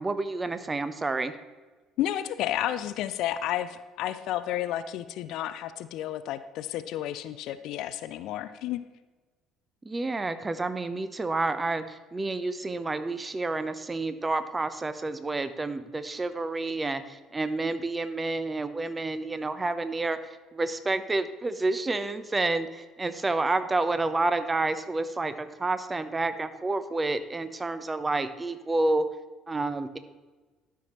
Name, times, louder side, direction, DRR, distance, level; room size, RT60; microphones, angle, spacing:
voice 1, 0.0-1.3 9.8-29.0 29.5-30.0, right 2 dB, 20° right, 11 dB, 0.7 m, -29 dB
voice 2, 2.0-8.8, left 12 dB, 60° left, 13 dB, 0.4 m, -31 dB
12.5 x 5.8 x 3.0 m, 1.3 s
hypercardioid pair, 55°, 0 cm